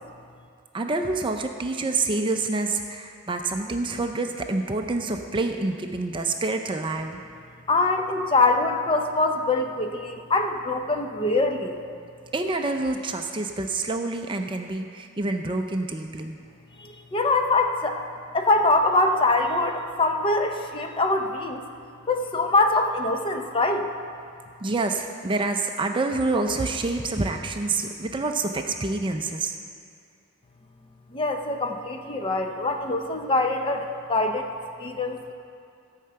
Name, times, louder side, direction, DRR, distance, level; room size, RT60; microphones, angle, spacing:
voice 1, 0.7-7.2 12.3-16.4 24.6-29.6, right 3 dB, 20° right, 4 dB, 0.5 m, -27 dB
voice 2, 7.7-11.8 16.8-18.0 18.3-21.6 22.1-23.9 31.1-34.5 34.8-35.3, left 2 dB, 25° left, 5 dB, 0.6 m, -23 dB
14.5 x 5.7 x 7.6 m, 2.4 s
head